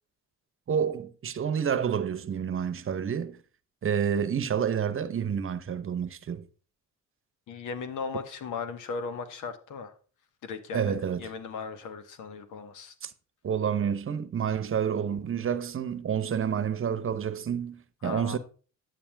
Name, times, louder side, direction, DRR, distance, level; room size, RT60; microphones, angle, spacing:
voice 1, 0.7-3.4 3.8-6.4 10.7-11.3 13.0-13.1 13.4-18.4, right 8 dB, 45° right, 0.9 m, -29 dB
voice 2, 7.5-9.9 10.4-12.9 18.0-18.4, left 5 dB, 80° left, 1.5 m, -37 dB
9.7 x 8.7 x 3.5 m
cardioid pair, 90°, 30 cm